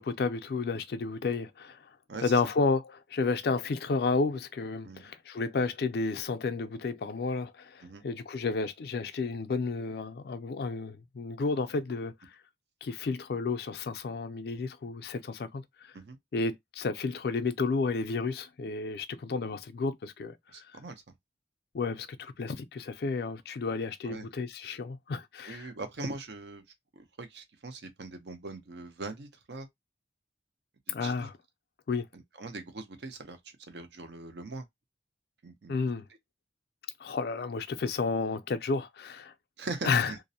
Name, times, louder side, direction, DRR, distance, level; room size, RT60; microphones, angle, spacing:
voice 1, 0.0-1.8 2.2-12.1 12.8-15.6 16.3-20.4 21.7-25.7 30.9-31.3 31.9-32.0 35.7-36.1 37.0-39.3 39.8-40.1, left 4 dB, 60° left, 0.3 m, -31 dB
voice 2, 20.5-21.0 24.0-24.3 25.5-26.6 26.9-29.7 30.9-31.3 32.1-33.4 33.7-34.6 35.4-35.7 39.6-40.2, right 3 dB, 70° right, 0.6 m, -41 dB
2.5 x 2.0 x 2.7 m
head